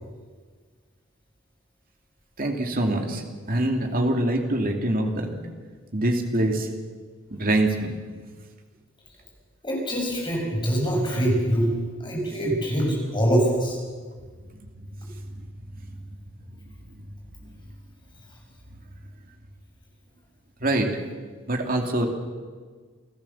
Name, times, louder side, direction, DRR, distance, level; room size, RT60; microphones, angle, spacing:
voice 1, 2.4-3.2 3.5-5.4 5.9-6.7 7.3-8.0 14.8-14.9 20.6-20.9 21.5-22.1, right 1 dB, 45° right, 3 dB, 2.5 m, -24 dB
voice 2, 9.6-11.8 12.0-13.8, right 1 dB, 20° left, -1 dB, 6.5 m, -24 dB
28.0 x 14.0 x 7.1 m, 1.5 s
head